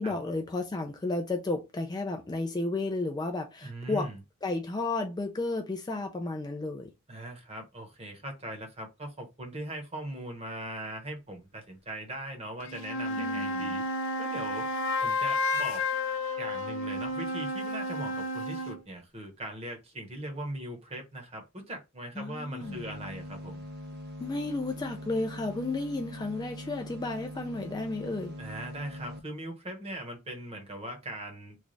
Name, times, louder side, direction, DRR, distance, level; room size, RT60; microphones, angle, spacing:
voice 1, 0.0-4.1 4.4-6.9 13.2-13.7 22.2-22.8 24.2-28.4, left 2 dB, 20° left, 0.3 m, -33 dB
voice 2, 3.6-4.2 7.1-13.8 14.2-14.7 15.0-15.9 16.4-23.7 28.4-31.6, right 1 dB, 30° right, 0.9 m, -40 dB
sound 1, 12.6-18.8, left 2 dB, 60° left, 0.7 m, -31 dB
sound 2, 22.6-29.2, equal, 50° right, 0.5 m, -42 dB
3.2 x 2.3 x 3.8 m
head